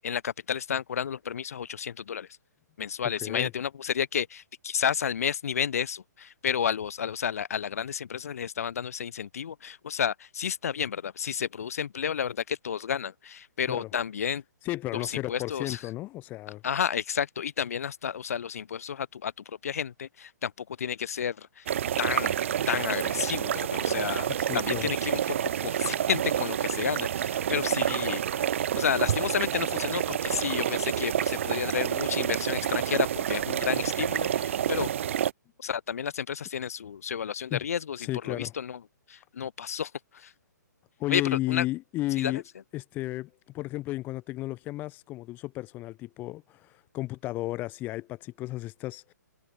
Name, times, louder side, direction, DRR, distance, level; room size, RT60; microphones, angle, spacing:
voice 1, 0.0-2.3 2.8-14.4 14.9-15.8 16.6-21.7 22.0-22.3 22.7-24.3 24.5-28.2 28.7-34.9 35.6-38.8 39.1-40.3 41.1-41.2 41.5-41.6 42.2-42.4, left 8 dB, 50° left, 0.7 m, -31 dB
voice 2, 3.2-3.5 13.7-13.9 14.6-16.6 24.4-24.9 37.5-37.6 38.0-38.5 41.0-42.4 42.7-43.3 43.5-46.7 46.9-49.0, left 17 dB, 20° left, 0.8 m, -33 dB
sound 1, 21.7-35.3, right 10 dB, 45° right, 0.5 m, -28 dB
figure-of-eight pair, 130°, 10 cm